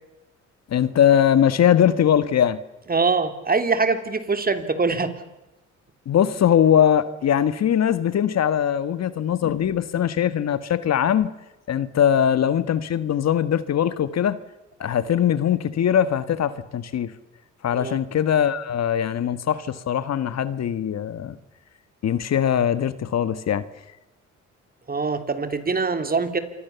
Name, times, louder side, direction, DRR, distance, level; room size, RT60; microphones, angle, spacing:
voice 1, 0.7-2.6 6.0-11.3 11.7-14.4 14.8-17.1 17.6-21.3 22.0-23.6, left 9 dB, 60° left, 1.6 m, -21 dB
voice 2, 2.9-5.1 17.7-18.0 24.9-26.4, right 4 dB, 30° right, 3.2 m, -23 dB
27.5 x 24.5 x 7.1 m
cardioid pair, 90°, 30 cm